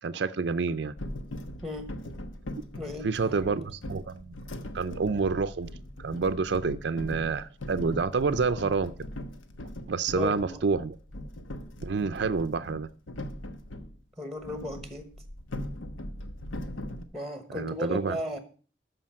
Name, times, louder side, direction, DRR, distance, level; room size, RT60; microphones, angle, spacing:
voice 1, 0.0-0.9 3.0-4.3 4.7-5.7 6.0-8.9 9.9-11.0 11.8-12.9 17.5-18.2, right 4 dB, 60° right, 11 dB, 0.4 m, -28 dB
sound 1, 1.0-13.9 14.4-17.0, left 1 dB, 90° left, 1.1 m, -40 dB
voice 2, 2.8-3.6 10.1-10.6 14.2-15.1 17.1-18.4, left 1 dB, ahead, 7 dB, 1.1 m, -35 dB
13.5 x 5.1 x 7.4 m, 0.41 s
head